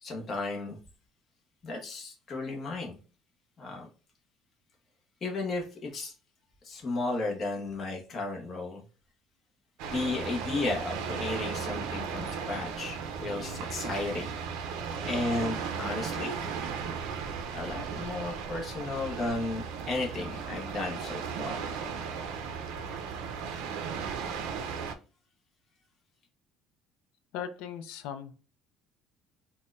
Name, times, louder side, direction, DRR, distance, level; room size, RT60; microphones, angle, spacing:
voice 1, 0.0-0.8 1.6-2.9 3.6-3.9 5.2-6.1 6.6-8.8 9.8-14.3 15.0-16.4 17.5-21.6, left 2 dB, 30° left, -1 dB, 0.7 m, -34 dB
sound 1, 9.8-24.9, right 6 dB, 85° right, 0.4 m, -36 dB
voice 2, 27.3-28.4, left 8 dB, 85° left, 9 dB, 0.4 m, -38 dB
4.1 x 2.1 x 2.4 m, 0.36 s
cardioid pair, 155°, 0 cm